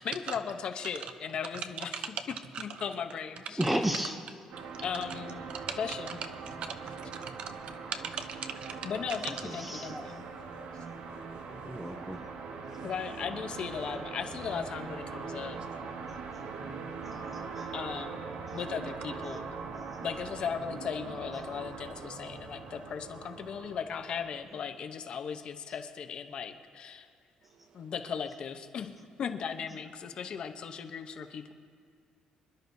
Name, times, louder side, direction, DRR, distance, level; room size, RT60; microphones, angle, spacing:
voice 1, 0.0-2.1 2.6-3.6 4.8-5.5 5.8-6.2 8.8-10.3 12.8-15.6 17.7-19.6 20.0-27.1 27.7-28.9 29.2-31.5, left 7 dB, 45° left, 0.8 m, -37 dB
voice 2, 3.6-4.2 9.4-10.1 11.5-12.2 13.8-13.9 17.3-17.7, right 1 dB, 5° right, 0.5 m, -33 dB
sound 1, 4.5-24.4, right 5 dB, 75° right, 1.2 m, -42 dB
voice 3, 6.5-8.9 11.7-11.9 12.7-12.8 16.3-16.7, right 6 dB, 50° right, 0.7 m, -41 dB
26.5 x 11.0 x 2.7 m
cardioid pair, 170°, 2 cm